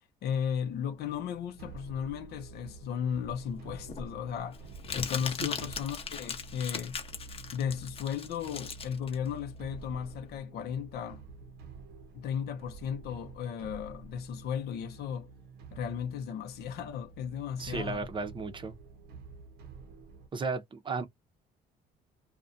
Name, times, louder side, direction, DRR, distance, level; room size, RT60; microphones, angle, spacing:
voice 1, 0.2-4.6 4.9-7.0 7.5-11.2 12.1-15.3 15.7-18.1, left 8 dB, 70° left, 0.7 m, -35 dB
sound 1, 0.6-20.3, right 4 dB, 70° right, 0.7 m, -49 dB
Crumpling crinkling, 3.3-10.4, left 5 dB, 35° left, 0.7 m, -39 dB
voice 2, 17.6-18.7 20.3-21.1, right 4 dB, 30° right, 0.6 m, -34 dB
2.4 x 2.2 x 2.5 m
cardioid pair, 110°, 17 cm